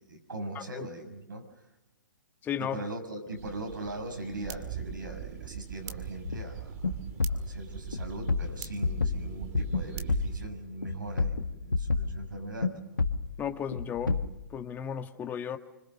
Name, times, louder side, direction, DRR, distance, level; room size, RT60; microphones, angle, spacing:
voice 1, 0.0-1.5 2.6-6.7 7.3-12.7, right 2 dB, 85° right, 3 dB, 6.9 m, -40 dB
voice 2, 2.4-2.8 13.4-14.2 14.5-15.6, left 8 dB, 20° left, 7 dB, 1.6 m, -34 dB
sound 1, 3.3-10.5, right 9 dB, 45° right, 2.3 m, -41 dB
sound 2, 6.2-6.5 6.8-6.9 7.2-7.5 7.9-9.8 10.1-10.4 10.8-12.2 12.6-12.7 13.0-13.3 13.7-14.3, left 3 dB, 90° left, 1.7 m, -29 dB
26.5 x 26.0 x 6.5 m, 0.98 s
figure-of-eight pair, 125°, 10 cm